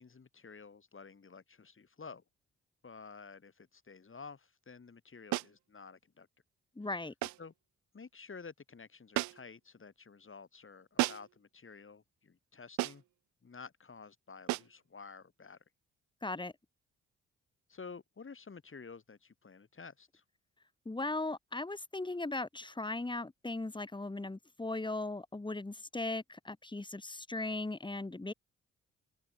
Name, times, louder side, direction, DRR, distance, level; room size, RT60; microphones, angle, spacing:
voice 1, 0.0-2.2 2.8-6.3 7.4-7.5 7.9-13.0 13.4-15.6 17.7-20.2, left 5 dB, 40° left, 7.2 m, -51 dB
sound 1, 5.3-5.6 7.2-7.5 9.1-9.6 11.0-11.4 12.8-13.1 14.5-14.8, right 20 dB, 65° right, 0.4 m, -34 dB
voice 2, 6.8-7.1 16.2-16.5 20.8-28.3, left 2 dB, 15° left, 1.7 m, -38 dB
open air
hypercardioid pair, 40°, 32 cm